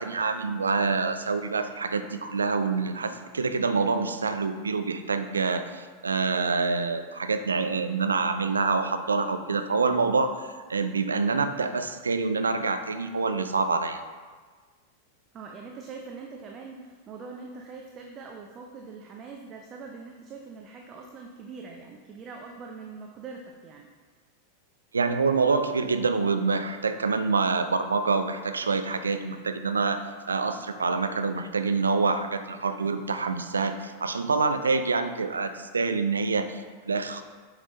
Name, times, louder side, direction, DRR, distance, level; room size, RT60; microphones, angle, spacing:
voice 1, 0.0-14.0 24.9-37.2, right 4 dB, 75° right, 9 dB, 0.4 m, -26 dB
voice 2, 15.3-23.9, right 4 dB, 30° right, 1 dB, 0.6 m, -43 dB
7.5 x 6.1 x 2.8 m, 1.5 s
figure-of-eight pair, 90°, 0 cm